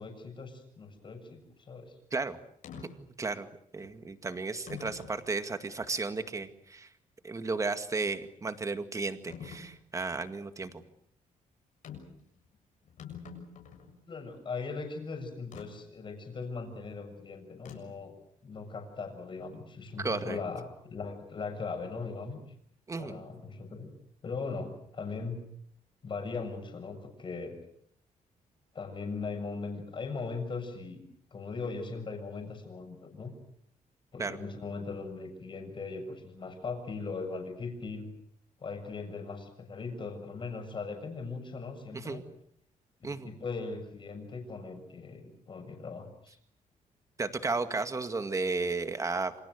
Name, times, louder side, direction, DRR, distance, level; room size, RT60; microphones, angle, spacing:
voice 1, 0.0-1.9 14.1-18.1 18.4-22.4 23.0-23.9 24.2-25.4 26.0-27.6 28.7-31.0 31.3-33.3 34.1-38.1 38.6-42.2 43.0-46.4, left 4 dB, 35° left, 5 dB, 7.0 m, -39 dB
sound 1, 2.6-2.9 3.8-3.9 4.7-5.2 5.8-5.9 9.3-9.7 11.8-12.2 12.5-12.6 12.8-13.9 15.5-15.7 17.6-18.0, left 7 dB, 70° left, 7.0 m, -45 dB
voice 2, 2.9-3.5 3.7-6.9 7.2-10.8 20.0-20.4 22.9-23.2 34.2-34.4 41.9-42.2 43.0-43.3 47.2-49.3, right 3 dB, 20° right, 9 dB, 2.0 m, -34 dB
28.0 x 26.5 x 6.6 m, 0.67 s
cardioid pair, 145°, 14 cm